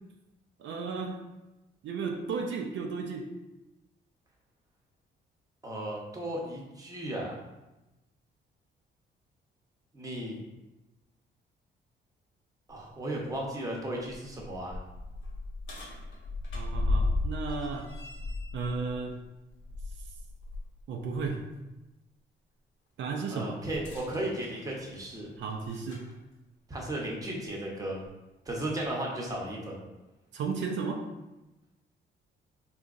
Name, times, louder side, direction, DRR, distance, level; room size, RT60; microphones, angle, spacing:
voice 1, 0.6-1.2 1.8-3.4 16.5-17.9 18.5-19.2 20.9-21.4 23.0-23.6 25.4-26.1 30.3-31.0, right 4 dB, 75° right, 2 dB, 0.4 m, -34 dB
voice 2, 5.6-7.4 9.9-10.4 12.7-14.8 23.3-25.3 26.7-28.0 28.5-29.8, right 1 dB, 20° right, -2 dB, 0.8 m, -35 dB
sound 1, 12.7-12.8 13.3-13.4 14.0-20.7 21.1-21.3 23.7-26.1 27.1-27.2 28.0-28.1, left 2 dB, 85° left, 1.0 m, -35 dB
3.8 x 2.8 x 2.5 m, 1.0 s
cardioid pair, 100°, 20 cm